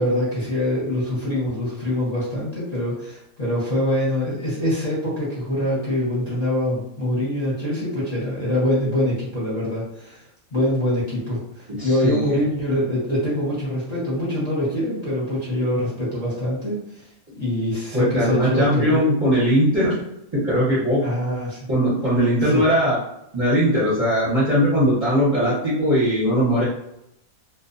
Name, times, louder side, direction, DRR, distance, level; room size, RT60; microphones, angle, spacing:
voice 1, 0.0-10.2 10.5-16.8 17.4-19.0 21.0-21.6 22.4-22.6, left 1 dB, 35° left, -9 dB, 0.9 m, -24 dB
voice 2, 11.8-12.3 17.9-19.9 20.3-21.0 21.7-23.0 23.3-26.7, equal, 30° right, -9 dB, 0.7 m, -19 dB
2.4 x 2.2 x 2.6 m, 0.80 s
omnidirectional pair, 1.5 m